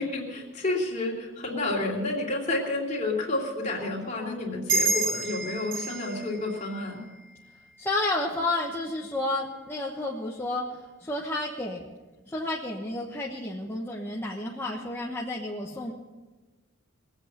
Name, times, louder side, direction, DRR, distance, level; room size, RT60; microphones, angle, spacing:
voice 1, 0.0-7.0, left 2 dB, 35° left, -2 dB, 3.1 m, -30 dB
sound 1, 4.7-7.8, right 3 dB, 75° right, 3.5 m, -30 dB
voice 2, 7.8-11.8 12.3-15.9, left 2 dB, 10° left, -3 dB, 1.1 m, -31 dB
21.5 x 8.1 x 6.7 m, 1.2 s
head